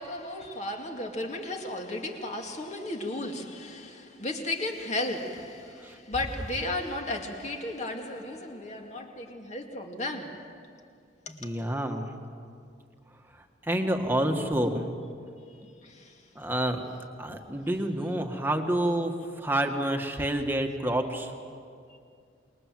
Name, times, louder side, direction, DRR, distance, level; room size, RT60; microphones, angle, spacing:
voice 1, 0.0-10.5 11.3-11.4 15.8-16.1, left 2 dB, 35° left, 2.3 m, -34 dB
voice 2, 11.4-12.1 13.6-14.9 16.3-16.8 17.2-21.3, right 1 dB, 10° right, 1.7 m, -28 dB
27.5 x 22.0 x 7.7 m
head